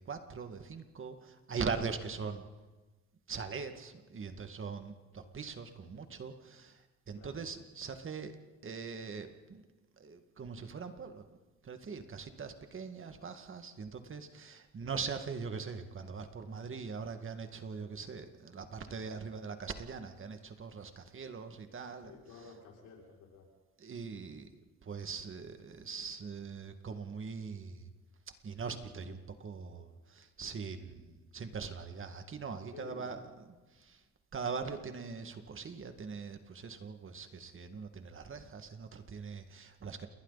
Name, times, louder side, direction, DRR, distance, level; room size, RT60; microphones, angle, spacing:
voice 1, 0.0-2.4 3.3-6.8 7.1-8.3 8.6-9.6 10.0-11.3 11.6-22.1 23.8-24.5 24.8-27.9 28.4-34.0 34.3-40.1, right 5 dB, 45° right, 7 dB, 2.1 m, -41 dB
voice 2, 7.1-7.5 22.0-23.5 32.7-33.1, left 5 dB, 85° left, -2 dB, 6.3 m, -52 dB
29.0 x 21.5 x 4.2 m, 1.2 s
cardioid pair, 90°, 30 cm